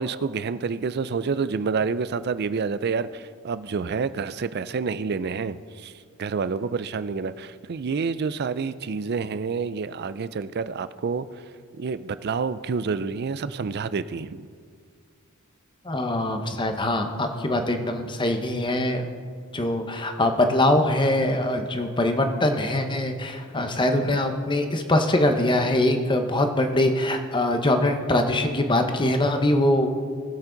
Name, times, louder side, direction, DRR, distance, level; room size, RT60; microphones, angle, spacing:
voice 1, 0.0-5.6 5.8-5.9 6.2-11.3 11.8-14.5, right 5 dB, 45° right, 14 dB, 0.4 m, -28 dB
voice 2, 15.8-19.0 19.5-29.9, left 1 dB, 20° left, 6 dB, 0.9 m, -23 dB
20.0 x 7.3 x 3.9 m, 2.1 s
head